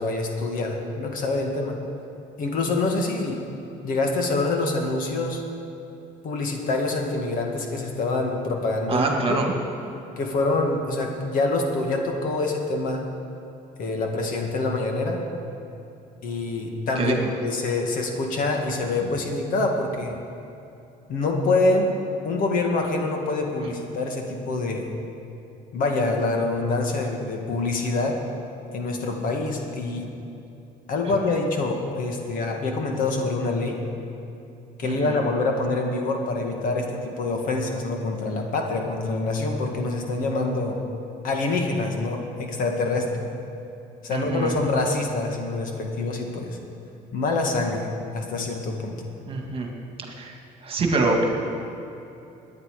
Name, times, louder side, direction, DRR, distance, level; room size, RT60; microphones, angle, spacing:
voice 1, 0.0-1.8 2.4-3.4 3.8-5.4 6.2-9.4 10.2-13.1 13.8-15.2 16.2-20.2 21.1-21.9 22.2-24.9 25.7-28.2 28.7-30.1 30.9-33.8 34.8-40.8 41.2-43.3 44.0-46.6 47.1-49.0, left 2 dB, 60° left, 2 dB, 2.0 m, -26 dB
voice 2, 8.9-9.5 17.0-17.3 34.8-35.2 44.1-44.5 49.3-49.7 50.2-50.3 50.6-51.4, right 3 dB, 35° right, 2 dB, 1.9 m, -25 dB
20.0 x 9.8 x 5.0 m, 2.9 s
cardioid pair, 135°, 16 cm